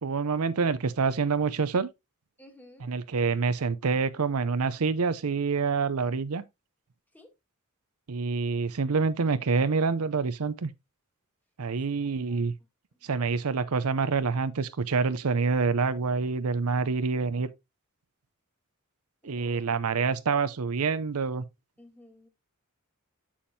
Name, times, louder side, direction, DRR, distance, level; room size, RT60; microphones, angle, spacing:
voice 1, 0.0-1.9 2.8-6.4 8.1-10.7 11.6-12.5 13.0-17.5 19.2-21.4, right 4 dB, 85° right, 0.6 m, -27 dB
voice 2, 2.4-2.9 7.1-7.3 12.0-12.4 13.0-13.1 19.2-19.6 21.8-22.3, left 1 dB, 10° left, 1.7 m, -54 dB
7.2 x 7.1 x 2.7 m
head